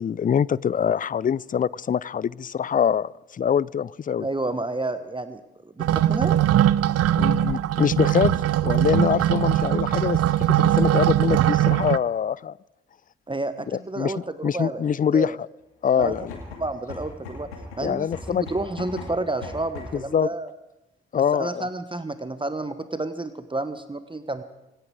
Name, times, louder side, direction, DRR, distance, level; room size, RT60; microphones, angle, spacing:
voice 1, 0.0-4.3 7.2-10.2 10.6-12.5 14.0-14.1 14.4-15.4 15.8-16.4 17.8-18.4 19.9-20.3 21.1-21.6, left 8 dB, 30° left, 23 dB, 0.5 m, -24 dB
voice 2, 4.2-6.4 13.3-14.8 15.1-15.4 16.0-16.1 16.6-17.5 17.8-20.5 21.1-24.4, right 2 dB, 15° right, 11 dB, 1.1 m, -30 dB
sound 1, 5.8-12.0, right 12 dB, 55° right, 0.6 m, -21 dB
sound 2, 16.0-20.1, left 3 dB, 85° left, 2.5 m, -39 dB
26.0 x 10.0 x 4.8 m, 0.94 s
hypercardioid pair, 40°, 30 cm